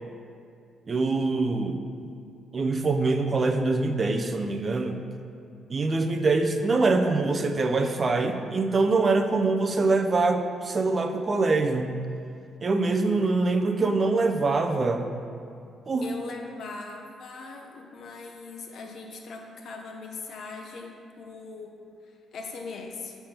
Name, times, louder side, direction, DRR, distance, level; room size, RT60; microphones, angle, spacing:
voice 1, 0.9-2.1 2.5-5.0 5.7-12.0 12.6-15.1 15.9-16.1, right 3 dB, 35° right, 5 dB, 0.5 m, -24 dB
voice 2, 16.0-21.7 22.0-23.2, left 4 dB, 65° left, 2 dB, 0.8 m, -40 dB
7.1 x 3.4 x 5.8 m, 2.4 s
cardioid pair, 90°, 0 cm